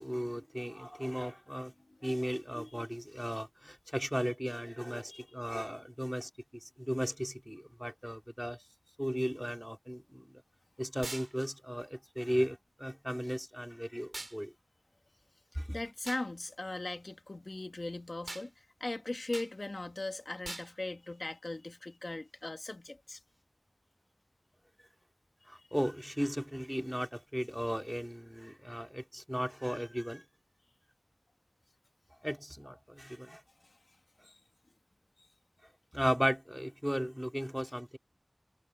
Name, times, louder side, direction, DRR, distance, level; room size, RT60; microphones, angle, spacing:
voice 1, 0.0-1.7 2.0-8.6 9.0-10.4 10.8-14.5 15.5-15.8 24.8-24.9 25.4-30.2 32.2-33.4 35.9-38.0, equal, 5° right, 3.2 m, -36 dB
sound 1, 11.0-11.3 14.1-14.4 16.1-16.3 18.3-18.5 19.3-19.5 20.4-20.7, right 2 dB, 65° right, 6.6 m, -41 dB
voice 2, 15.7-23.2 33.6-33.7 34.2-34.4, left 2 dB, 80° left, 2.3 m, -39 dB
wide cardioid pair, 40°, 0 cm